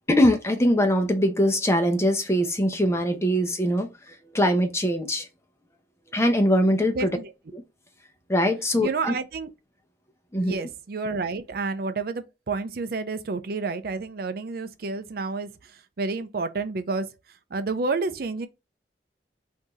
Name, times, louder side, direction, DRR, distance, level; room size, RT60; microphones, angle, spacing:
voice 1, 0.1-5.3 6.1-7.1 7.5-7.6 8.3-9.1 10.3-10.6, equal, 15° left, 0.8 m, -22 dB
voice 2, 7.0-7.3 8.8-9.5 10.3-18.5, right 3 dB, 60° right, 0.5 m, -30 dB
5.7 x 2.7 x 3.0 m
head